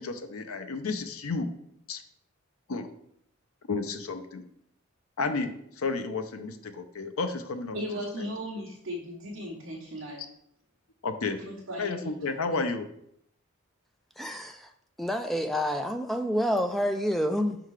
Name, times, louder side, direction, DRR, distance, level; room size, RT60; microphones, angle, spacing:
voice 1, 0.0-1.5 1.9-2.0 2.7-2.9 3.7-4.4 5.2-5.5 5.8-7.8 11.0-11.4 11.8-12.9, left 4 dB, 80° left, 8 dB, 0.6 m, -31 dB
voice 2, 7.7-10.3 11.5-12.2, equal, 60° right, -4 dB, 1.1 m, -37 dB
voice 3, 14.2-14.7 15.0-17.6, equal, ahead, 6 dB, 0.3 m, -28 dB
5.4 x 3.9 x 4.7 m, 0.72 s
head